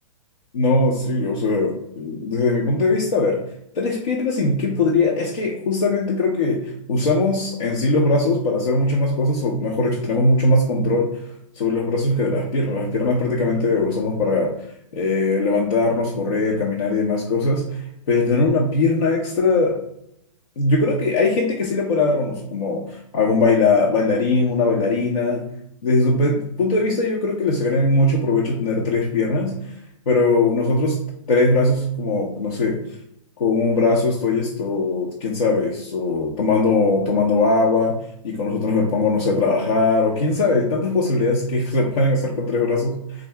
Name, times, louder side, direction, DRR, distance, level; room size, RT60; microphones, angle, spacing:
voice 1, 0.5-3.4 3.8-11.1 11.6-14.5 14.9-17.6 18.1-19.8 20.6-25.4 25.8-29.5 30.1-31.0 31.3-32.8 33.4-38.0 38.2-43.3, left 3 dB, 80° left, -2 dB, 0.7 m, -20 dB
3.6 x 2.7 x 3.3 m, 0.76 s
hypercardioid pair, 130°, 17 cm